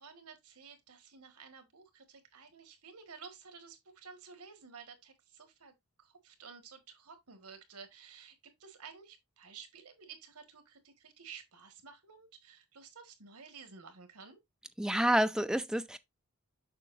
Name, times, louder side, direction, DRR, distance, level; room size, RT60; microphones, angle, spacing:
voice 1, 0.0-14.4, right 6 dB, 85° right, 1.5 m, -53 dB
voice 2, 14.8-16.0, right 1 dB, 5° right, 0.3 m, -28 dB
6.8 x 5.7 x 2.5 m
head